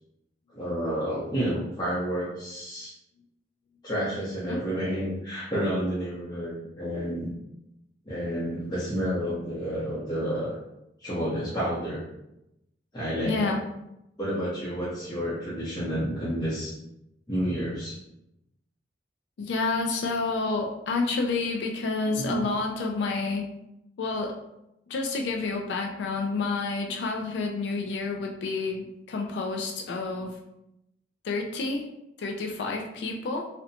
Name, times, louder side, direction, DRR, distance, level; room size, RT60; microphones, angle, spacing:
voice 1, 0.5-2.9 3.8-7.3 8.0-10.6 11.0-12.0 12.9-13.5 14.2-16.7 17.3-18.0 22.1-22.5, equal, 25° left, -9 dB, 0.6 m, -30 dB
voice 2, 13.2-13.6 19.4-23.5 24.0-24.3 24.9-30.4 31.2-31.9 32.2-33.5, left 3 dB, 75° left, 2 dB, 0.3 m, -29 dB
2.7 x 2.1 x 2.6 m, 0.86 s
head